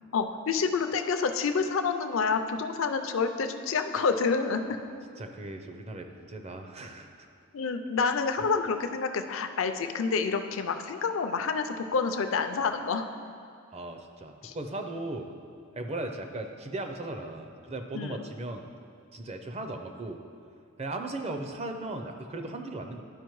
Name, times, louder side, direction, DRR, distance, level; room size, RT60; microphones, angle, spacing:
voice 1, 0.1-4.8 7.5-13.1 14.4-14.5 17.9-18.2, left 5 dB, 65° left, 7 dB, 0.5 m, -28 dB
voice 2, 5.2-7.3 13.7-15.3 15.7-18.7 19.1-20.2 20.8-23.0, right 2 dB, 30° right, 5 dB, 0.5 m, -37 dB
11.5 x 5.1 x 3.1 m, 2.5 s
head